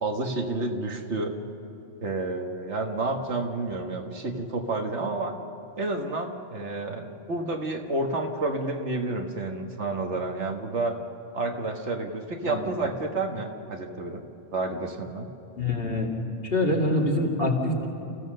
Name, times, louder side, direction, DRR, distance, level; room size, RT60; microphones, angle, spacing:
voice 1, 0.0-1.3 2.0-5.3 5.8-11.0 11.3-14.2 14.5-15.3, right 2 dB, 65° right, 3 dB, 1.7 m, -30 dB
voice 2, 15.6-16.1 16.4-17.9, left 1 dB, 50° left, -1 dB, 2.7 m, -25 dB
30.0 x 15.5 x 6.6 m, 2.8 s
omnidirectional pair, 1.3 m